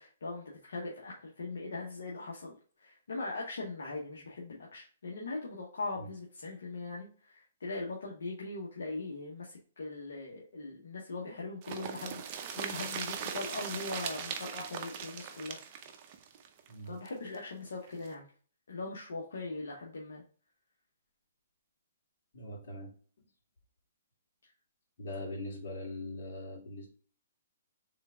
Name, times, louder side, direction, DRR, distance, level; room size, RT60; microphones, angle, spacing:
voice 1, 0.0-15.6 16.9-18.3 18.7-20.2, left 3 dB, 80° left, -2 dB, 1.0 m, -40 dB
sound 1, 11.6-17.4 17.7-17.8 18.0-18.1, right 7 dB, 35° right, 0.6 m, -39 dB
voice 2, 16.7-17.0 22.3-22.9 25.0-26.9, left 1 dB, 60° left, -3 dB, 2.3 m, -41 dB
3.7 x 3.4 x 3.5 m, 0.41 s
hypercardioid pair, 145°, 0 cm